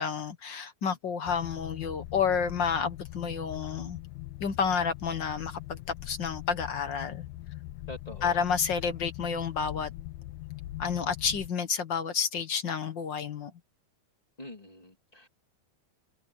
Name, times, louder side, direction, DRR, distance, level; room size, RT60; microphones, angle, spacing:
voice 1, 0.0-4.0 4.4-7.3 8.2-9.9 10.8-13.5, left 6 dB, 50° left, 1.6 m, -30 dB
sound 1, 1.2-11.5, left 16 dB, 85° left, 2.2 m, -41 dB
voice 2, 7.9-8.4 14.4-15.3, left 1 dB, 15° left, 2.0 m, -45 dB
omnidirectional pair, 3.4 m